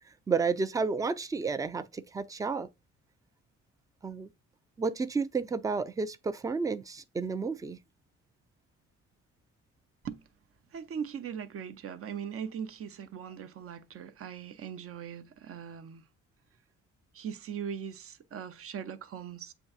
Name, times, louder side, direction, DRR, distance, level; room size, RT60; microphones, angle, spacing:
voice 1, 0.3-2.7 4.0-4.3 4.8-7.8, right 4 dB, 10° right, 0.4 m, -31 dB
voice 2, 10.7-16.0 17.1-19.5, right 7 dB, 50° right, 0.6 m, -40 dB
7.7 x 2.6 x 2.4 m
cardioid pair, 90°, 30 cm